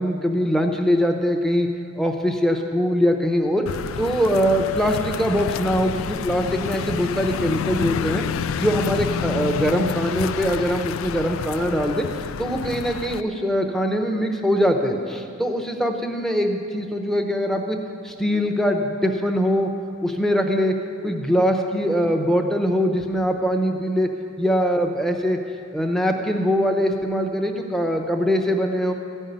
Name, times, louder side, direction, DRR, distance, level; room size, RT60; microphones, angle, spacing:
voice 1, 0.0-1.7 2.0-3.7 4.0-8.2 8.6-12.1 12.4-17.8 18.0-19.7 20.0-20.8 21.0-25.4 25.7-28.9, equal, ahead, 3 dB, 0.8 m, -22 dB
sound 1, 3.7-13.2, left 6 dB, 75° left, 0.3 m, -29 dB
14.5 x 5.5 x 9.2 m, 2.4 s
head